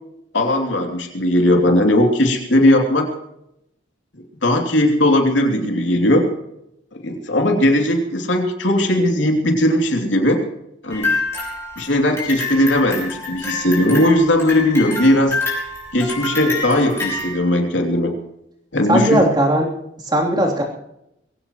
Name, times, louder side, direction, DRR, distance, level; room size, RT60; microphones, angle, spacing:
voice 1, 0.3-3.1 4.4-6.3 7.0-10.4 10.8-11.2 11.8-15.4 15.9-18.2 18.7-19.2, left 1 dB, 85° left, 3 dB, 3.0 m, -17 dB
sound 1, 10.9-17.3, left 3 dB, 15° left, 5.2 m, -27 dB
voice 2, 18.9-19.7 20.0-20.6, right 1 dB, 25° right, -1 dB, 3.3 m, -17 dB
22.0 x 16.5 x 3.1 m, 0.80 s
head